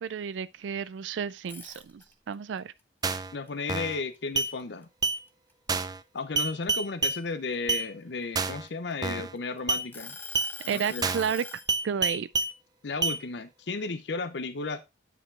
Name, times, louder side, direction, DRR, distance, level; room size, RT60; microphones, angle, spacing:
voice 1, 0.0-2.7 10.6-12.3, right 7 dB, 85° right, 0.4 m, -32 dB
sound 1, 1.4-2.3 2.8-4.6 5.0-5.3 5.7-7.5 8.2-9.4 9.9-11.7, left 3 dB, 10° left, 0.8 m, -43 dB
sound 2, 3.0-3.3 3.7-4.0 4.4-4.5 5.0-5.2 5.7-6.0 6.4-7.2 7.7-7.8 8.3-8.7 9.0-9.3 9.7-9.8 10.3-10.5 11.0-11.3 11.7-12.5 13.0-13.2, right 4 dB, 20° right, 0.4 m, -28 dB
voice 2, 3.3-4.9 6.1-10.2 10.7-11.1 12.8-14.8, left 4 dB, 65° left, 0.7 m, -34 dB
8.8 x 5.0 x 3.6 m
head